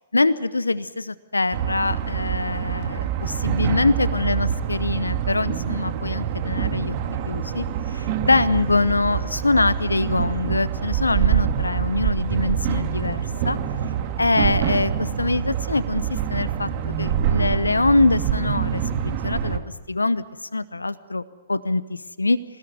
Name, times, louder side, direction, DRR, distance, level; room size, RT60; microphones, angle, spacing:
voice 1, 0.1-7.0 7.2-13.6 14.2-16.7 17.0-19.6 19.9-20.2 20.5-21.2 21.5-22.4, left 2 dB, 80° left, 17 dB, 0.8 m, -23 dB
under Leningradskiy bridge right-side near water, 1.5-19.6, right 8 dB, 40° right, 2.4 m, -25 dB
27.5 x 17.5 x 9.5 m, 1.3 s
figure-of-eight pair, 115°, 0 cm